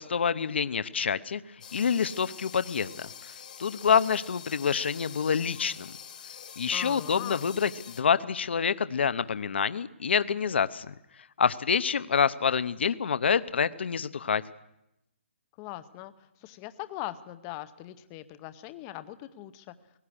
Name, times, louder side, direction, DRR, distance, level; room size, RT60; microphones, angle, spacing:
voice 1, 0.0-1.4 1.7-3.1 3.6-5.9 6.6-10.9 11.4-14.4, left 6 dB, 60° left, 14 dB, 0.8 m, -27 dB
sound 1, 1.6-8.0, left 8 dB, 40° left, 1.8 m, -46 dB
voice 2, 6.7-7.4 15.6-16.1 16.4-19.7, left 15 dB, 15° left, 12 dB, 0.7 m, -40 dB
18.0 x 16.0 x 9.9 m, 0.87 s
hypercardioid pair, 170°, 7 cm